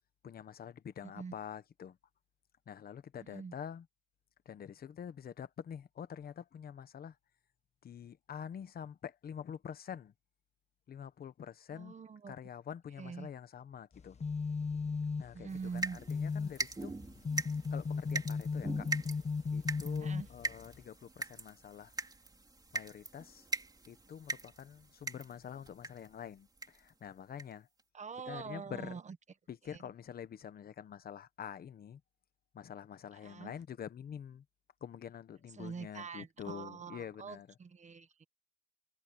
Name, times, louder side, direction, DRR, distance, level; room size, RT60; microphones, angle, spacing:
voice 1, 0.2-2.0 2.7-3.8 4.4-7.2 7.8-10.1 10.9-11.9 12.3-14.2 15.2-16.9 17.7-18.9 19.5-21.9 22.7-23.4 23.9-27.7 28.3-29.0 29.5-32.0 32.5-34.4 34.8-37.5, left 8 dB, 80° left, 1.1 m, -46 dB
voice 2, 1.0-1.3 3.2-3.5 11.7-12.3 13.0-13.3 15.3-16.0 20.0-20.3 27.9-29.2 29.6-29.8 33.1-33.5 35.5-38.2, right 5 dB, 50° right, 1.3 m, -45 dB
sound 1, 13.9-20.8, left 5 dB, 45° left, 1.6 m, -37 dB
sound 2, 15.5-26.1 26.6-26.9 27.4-27.5 27.8-27.9, right 3 dB, 25° right, 3.8 m, -42 dB
wide cardioid pair, 125°, 15 cm